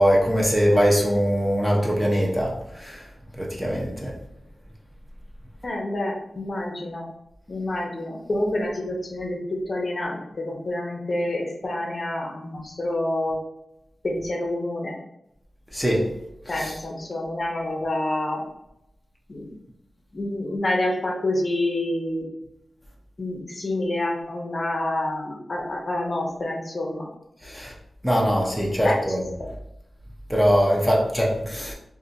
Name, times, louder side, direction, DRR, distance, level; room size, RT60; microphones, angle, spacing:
voice 1, 0.0-2.5 2.8-3.0 3.4-4.1 15.7-16.1 16.6-16.7 27.4-27.7 28.0-29.2 30.3-31.7, equal, ahead, -3 dB, 0.6 m, -21 dB
voice 2, 5.6-7.1 7.5-13.4 14.0-14.9 16.5-18.4 19.3-19.5 20.1-22.3 23.2-27.1 28.8-29.0 29.4-29.5, left 1 dB, 40° left, -1 dB, 0.6 m, -28 dB
2.5 x 2.5 x 3.9 m, 0.83 s
wide cardioid pair, 135°, 0 cm